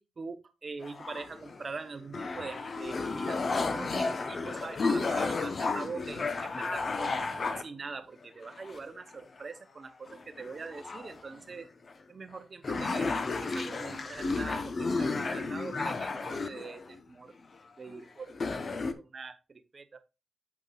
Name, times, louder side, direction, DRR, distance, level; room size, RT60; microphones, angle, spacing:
voice 1, 0.0-3.4 3.7-7.2 7.6-11.7 12.1-13.1 13.4-17.3 17.8-20.0, right 4 dB, 35° right, 10 dB, 0.8 m, -43 dB
sound 1, 0.8-1.7 2.1-7.6 8.4-9.1 9.4-9.5 10.1-11.2 11.9-12.0 12.3-12.4 12.6-17.0 17.9-18.0 18.3-18.9, left 3 dB, 40° left, 0.8 m, -32 dB
8.3 x 7.5 x 2.4 m, 0.28 s
wide cardioid pair, 140°, 0 cm